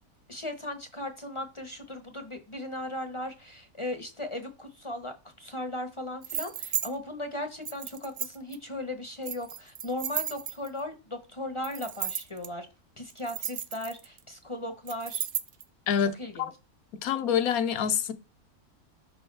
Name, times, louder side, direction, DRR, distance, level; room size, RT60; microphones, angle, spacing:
voice 1, 0.3-12.7 13.0-15.3 16.2-16.5, left 1 dB, 25° left, 0.7 m, -37 dB
sound 1, 6.2-6.9 7.6-8.5 9.2-10.8 11.6-12.5 13.1-14.2 14.9-15.6, right 9 dB, 60° right, 0.8 m, -34 dB
voice 2, 15.9-16.5 17.0-18.1, left 8 dB, 75° left, 1.2 m, -26 dB
6.2 x 4.7 x 3.2 m
omnidirectional pair, 1.6 m